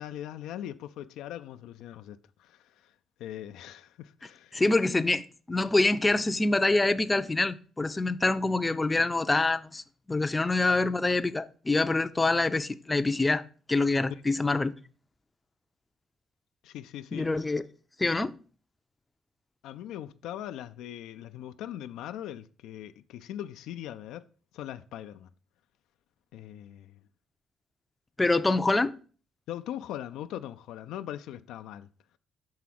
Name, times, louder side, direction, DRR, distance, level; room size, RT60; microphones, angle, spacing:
voice 1, 0.0-2.9 3.2-4.6 16.6-17.3 19.6-24.2 24.5-25.3 26.3-27.0 29.5-31.9, left 11 dB, 90° left, 0.3 m, -40 dB
voice 2, 4.5-9.8 10.1-13.4 13.7-14.7 17.1-17.6 18.0-18.4 28.2-28.9, left 2 dB, 20° left, 0.5 m, -25 dB
6.0 x 4.8 x 5.8 m
cardioid pair, 90°, 0 cm